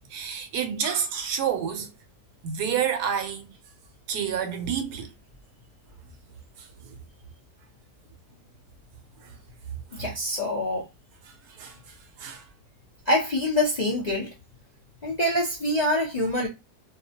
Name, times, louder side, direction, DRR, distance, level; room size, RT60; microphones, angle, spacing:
voice 1, 0.1-1.9 2.4-3.5 4.1-5.1 6.6-6.7 9.2-9.3 11.6-11.8 12.2-12.4, right 8 dB, 75° right, 1.1 m, -28 dB
voice 2, 9.9-10.9 13.1-14.3 15.0-16.5, left 1 dB, 50° left, 0.5 m, -25 dB
2.8 x 2.0 x 2.8 m
omnidirectional pair, 1.8 m